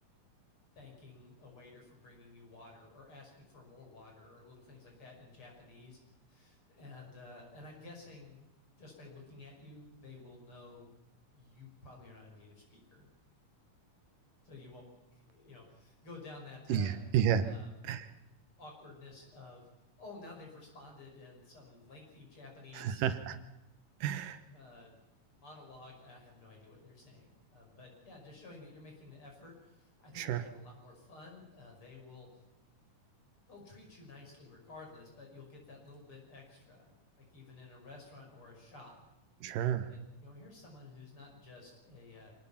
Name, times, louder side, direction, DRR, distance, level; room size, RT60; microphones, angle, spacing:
voice 1, 0.7-6.0 6.3-8.5 8.8-10.9 11.3-13.1 14.4-17.0 17.4-17.8 18.6-19.7 20.0-23.0 24.1-25.0 25.3-32.4 33.5-39.1 39.9-42.3, left 3 dB, 40° left, 0 dB, 6.5 m, -53 dB
voice 2, 16.7-17.5 17.9-18.1 22.8-23.4 24.0-24.4 30.2-30.4 39.4-39.9, right 9 dB, 85° right, 11 dB, 2.8 m, -31 dB
25.5 x 18.5 x 5.8 m, 0.96 s
omnidirectional pair, 3.7 m